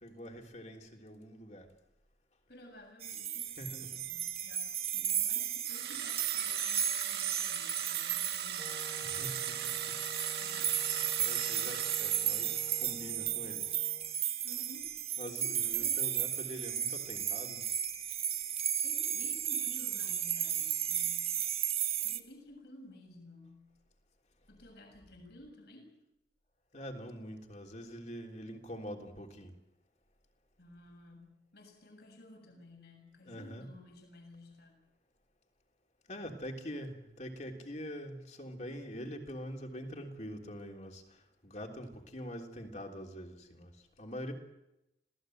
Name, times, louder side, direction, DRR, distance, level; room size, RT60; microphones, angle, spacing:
voice 1, 0.0-1.7 3.6-4.0 9.0-9.7 10.6-13.8 15.2-17.7 26.7-29.5 33.2-33.7 36.1-44.3, equal, 40° left, 2 dB, 3.4 m, -44 dB
voice 2, 2.5-9.0 10.4-10.8 14.4-15.0 15.6-16.0 18.8-21.4 22.0-23.7 24.5-26.0 30.6-34.9, left 1 dB, 65° left, 3 dB, 7.0 m, -54 dB
sound 1, 3.0-22.2, right 9 dB, 35° right, 1.2 m, -34 dB
sound 2, 5.7-13.0, right 9 dB, 65° right, 1.5 m, -40 dB
Wind instrument woodwind instrument, 8.6-14.2, left 1 dB, 15° left, 1.1 m, -51 dB
26.5 x 17.5 x 7.9 m, 0.88 s
head